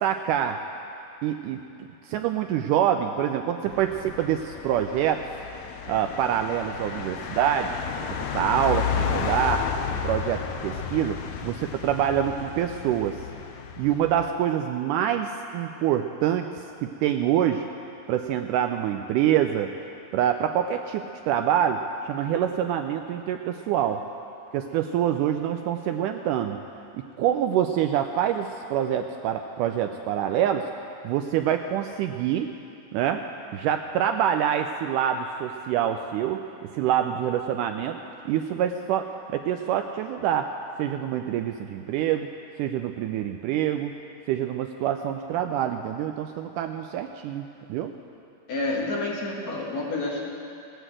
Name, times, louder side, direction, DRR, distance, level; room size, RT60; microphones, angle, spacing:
voice 1, 0.0-0.6 1.2-1.6 2.0-5.2 5.9-7.8 8.1-9.7 10.0-11.2 11.4-13.2 13.8-17.7 18.1-19.7 20.1-24.0 24.5-26.6 26.9-30.7 31.0-32.5 32.9-33.2 33.5-36.4 36.7-38.0 38.3-40.5 40.8-42.3 42.6-43.9 44.3-47.9, right 10 dB, 80° right, 6 dB, 1.9 m, -26 dB
sound 1, 3.7-14.3, left 7 dB, 75° left, 1.8 m, -32 dB
voice 2, 48.5-50.3, left 2 dB, 55° left, -3 dB, 2.9 m, -29 dB
18.0 x 8.1 x 7.7 m, 2.7 s
omnidirectional pair, 4.0 m